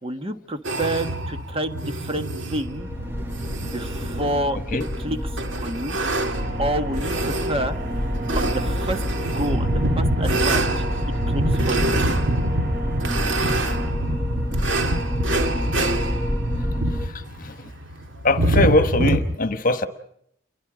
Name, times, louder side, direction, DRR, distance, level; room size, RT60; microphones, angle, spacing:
voice 1, 0.0-2.9 3.6-4.6 5.0-6.0 6.6-7.8 8.3-10.8 11.3-12.0, right 1 dB, 30° right, 7 dB, 1.5 m, -29 dB
sound 1, 0.6-19.2, right 1 dB, 80° right, 2.2 m, -26 dB
sound 2, 2.5-17.1, left 1 dB, 10° right, 1.9 m, -28 dB
sound 3, 6.3-13.9, right 1 dB, 60° right, 3.3 m, -33 dB
voice 2, 17.1-17.5 18.2-19.9, left 2 dB, 45° left, 10 dB, 1.3 m, -21 dB
29.5 x 23.0 x 5.1 m, 0.71 s
head